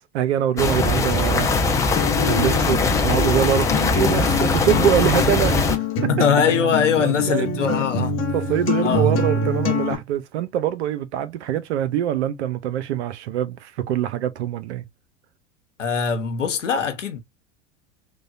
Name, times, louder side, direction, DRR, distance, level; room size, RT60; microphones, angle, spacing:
voice 1, 0.1-1.5 2.2-5.8 7.0-7.9 8.3-14.8, right 10 dB, 65° right, 0.6 m, -24 dB
sound 1, 0.6-5.8, left 3 dB, 10° left, 0.3 m, -21 dB
Acoustic guitar, 2.0-9.9, left 3 dB, 35° left, 1.0 m, -25 dB
voice 2, 6.1-8.2 8.8-9.2 15.8-17.2, left 7 dB, 85° left, 0.8 m, -22 dB
3.2 x 2.2 x 2.5 m
figure-of-eight pair, 85°, 36 cm